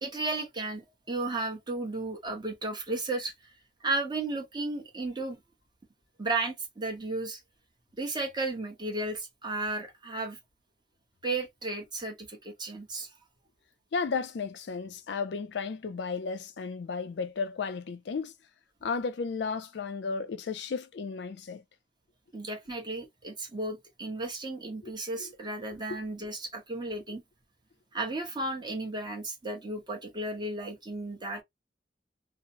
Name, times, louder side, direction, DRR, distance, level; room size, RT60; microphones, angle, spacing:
voice 1, 0.0-3.3 3.8-5.4 6.2-7.4 8.0-10.4 11.2-13.1 22.3-27.2 27.9-31.4, right 2 dB, 25° right, 0.9 m, -34 dB
voice 2, 13.9-18.3 18.8-21.6 24.8-24.9 25.2-25.3 25.9-26.0, left 5 dB, 70° left, 0.4 m, -34 dB
2.8 x 2.0 x 2.6 m
head